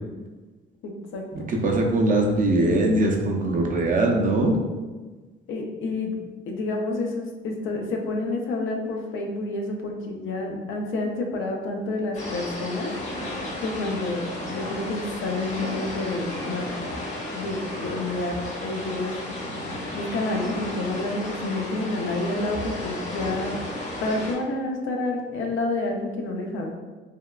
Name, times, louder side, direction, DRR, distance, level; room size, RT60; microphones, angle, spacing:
voice 1, 0.8-1.5 5.5-6.2 6.5-12.9 13.6-16.7 17.3-19.2 19.9-23.6 24.0-26.7, left 2 dB, 75° left, 2 dB, 0.5 m, -29 dB
voice 2, 1.5-4.6, right 2 dB, 40° right, 1 dB, 0.5 m, -21 dB
sound 1, 12.1-24.3, left 1 dB, 35° left, 0.9 m, -33 dB
3.4 x 2.2 x 2.2 m, 1.3 s
cardioid pair, 90°, 20 cm